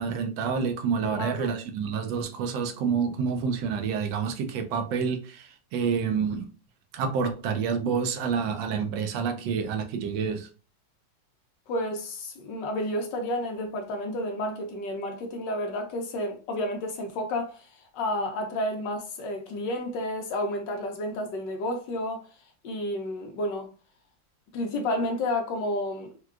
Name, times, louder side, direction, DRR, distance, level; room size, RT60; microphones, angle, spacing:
voice 1, 0.0-6.5 6.9-10.5, right 6 dB, 75° right, 1.3 m, -28 dB
voice 2, 1.0-1.6 11.7-17.7 17.9-22.3 22.6-23.7 24.5-26.2, left 1 dB, 70° left, 1.2 m, -31 dB
4.4 x 2.2 x 2.3 m
omnidirectional pair, 2.1 m